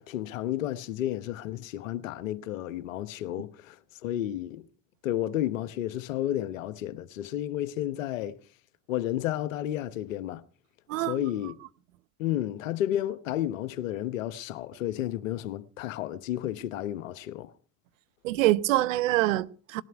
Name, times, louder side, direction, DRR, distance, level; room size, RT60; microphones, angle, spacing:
voice 1, 0.0-4.6 5.0-8.4 8.9-10.4 11.0-11.5 12.2-17.5, left 12 dB, 80° left, 1.1 m, -32 dB
voice 2, 18.2-19.8, right 16 dB, 75° right, 0.9 m, -25 dB
19.0 x 12.5 x 5.8 m
hypercardioid pair, 60°, 39 cm